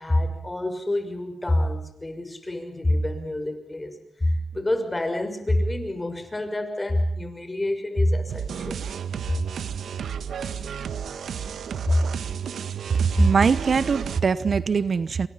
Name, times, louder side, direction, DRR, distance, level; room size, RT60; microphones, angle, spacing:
voice 1, 0.0-8.8 9.3-9.4 11.9-12.0 13.2-13.3, left 1 dB, 25° left, 7 dB, 6.2 m, -26 dB
sound 1, 8.3-14.2, right 7 dB, 85° right, 1.3 m, -32 dB
voice 2, 13.2-15.3, right 5 dB, 60° right, 16 dB, 0.9 m, -22 dB
28.0 x 24.5 x 5.8 m, 0.69 s
cardioid pair, 65°, 0 cm